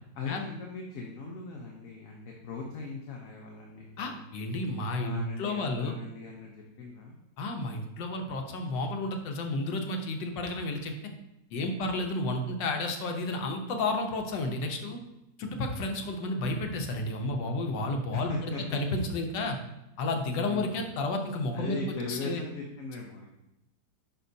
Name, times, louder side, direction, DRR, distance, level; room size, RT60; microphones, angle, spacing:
voice 1, 0.2-4.2 5.0-7.1 18.1-18.8 20.1-20.8 21.5-23.3, left 3 dB, 55° left, -1 dB, 1.1 m, -39 dB
voice 2, 4.0-5.9 7.4-10.9 11.5-15.0 15.4-19.6 20.0-22.4, left 2 dB, 85° left, 4 dB, 1.6 m, -31 dB
10.0 x 5.1 x 2.7 m, 0.92 s
omnidirectional pair, 1.9 m